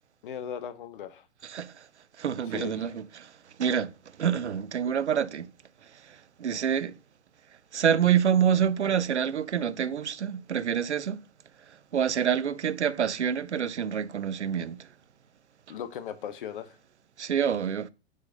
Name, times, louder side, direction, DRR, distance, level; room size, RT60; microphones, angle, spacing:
voice 1, 0.2-1.2 2.5-2.8 15.7-16.8, left 8 dB, 50° left, 0.9 m, -37 dB
voice 2, 1.4-1.9 2.2-3.3 3.6-3.9 4.2-5.5 6.1-7.0 7.7-11.2 11.9-14.9 17.2-17.9, right 8 dB, 80° right, 0.5 m, -27 dB
4.8 x 4.1 x 5.2 m
figure-of-eight pair, 105°, 34 cm